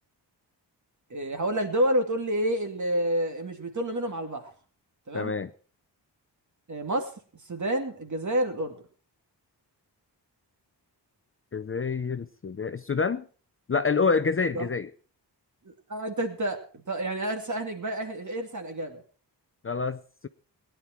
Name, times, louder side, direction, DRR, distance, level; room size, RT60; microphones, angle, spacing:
voice 1, 1.1-4.5 5.1-5.3 6.7-7.1 7.5-8.8 14.5-14.7 15.9-19.0, right 1 dB, 45° right, 2.5 m, -29 dB
voice 2, 5.1-5.5 11.5-13.3 13.7-14.9 19.6-20.3, left 4 dB, 30° left, 0.6 m, -27 dB
18.5 x 10.5 x 4.5 m
wide cardioid pair, 80°, 42 cm